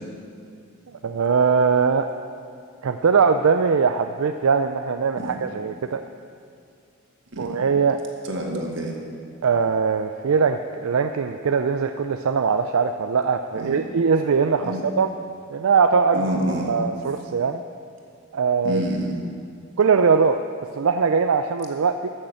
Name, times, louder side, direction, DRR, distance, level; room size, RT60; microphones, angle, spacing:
voice 1, 1.0-2.1 2.8-6.0 7.4-8.0 9.4-15.1 15.5-16.3 16.7-17.6 18.3-18.8 19.8-20.4 20.7-22.1, right 5 dB, 80° right, 7 dB, 0.4 m, -21 dB
voice 2, 8.3-9.0 13.5-13.8 14.6-14.8 16.1-16.7 18.6-19.2, right 1 dB, 55° right, 0 dB, 1.9 m, -27 dB
13.0 x 6.6 x 7.8 m, 2.3 s
head